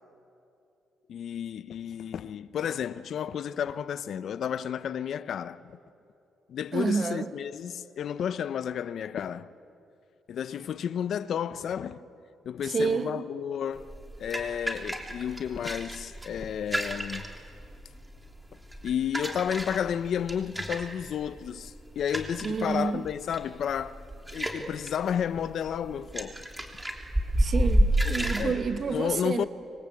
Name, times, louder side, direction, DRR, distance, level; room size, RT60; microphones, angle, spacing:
voice 1, 1.1-5.7 6.5-9.5 10.3-12.0 12.4-13.9 14.2-17.2 18.8-24.0 24.3-26.4 28.4-28.6 28.9-29.5, left 8 dB, 65° left, 0.8 m, -32 dB
voice 2, 6.7-7.3 12.6-13.2 22.4-23.0 27.4-29.5, right 5 dB, 45° right, 1.6 m, -29 dB
sound 1, 13.8-28.5, equal, 10° right, 3.2 m, -31 dB
26.5 x 22.5 x 8.5 m
cardioid pair, 90°, 0 cm